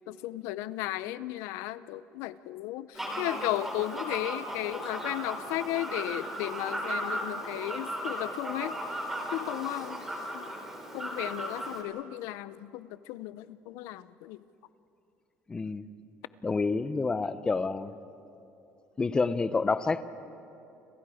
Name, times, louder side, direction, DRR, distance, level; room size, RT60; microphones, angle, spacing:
voice 1, 0.1-8.8 9.3-10.0 10.3-10.5 10.9-14.4, left 15 dB, 85° left, 16 dB, 0.7 m, -35 dB
Fowl, 3.0-11.8, right 1 dB, 5° right, 3.3 m, -36 dB
voice 2, 15.5-15.8 16.4-17.9 19.0-20.1, left 4 dB, 15° left, 13 dB, 0.7 m, -28 dB
30.0 x 26.5 x 5.0 m, 2.9 s
cardioid pair, 150°, 5 cm